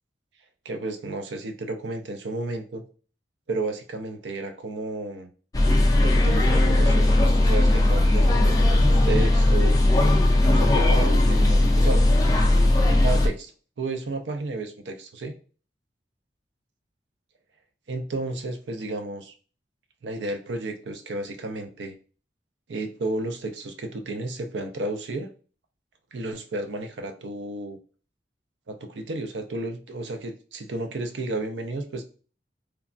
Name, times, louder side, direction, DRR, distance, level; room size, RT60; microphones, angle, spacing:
voice 1, 0.6-2.8 3.5-5.3 6.0-9.8 10.4-12.0 13.0-13.5 13.8-15.3 17.9-19.3 20.0-22.0 22.7-25.3 26.1-27.8 28.7-32.0, right 2 dB, 80° right, 6 dB, 0.5 m, -32 dB
sound 1, 5.5-13.3, left 1 dB, 20° left, 0.3 m, -18 dB
3.2 x 2.1 x 2.5 m, 0.38 s
head